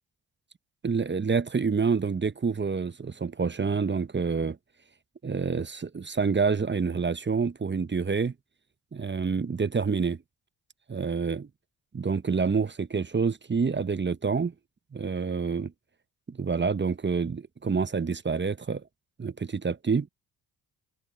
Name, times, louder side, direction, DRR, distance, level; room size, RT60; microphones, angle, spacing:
voice 1, 0.8-4.6 5.2-8.3 8.9-10.2 10.9-11.5 11.9-14.5 14.9-15.7 16.3-18.8 19.2-20.1, right 5 dB, 25° right, 0.9 m, -27 dB
hypercardioid pair, 40°, 48 cm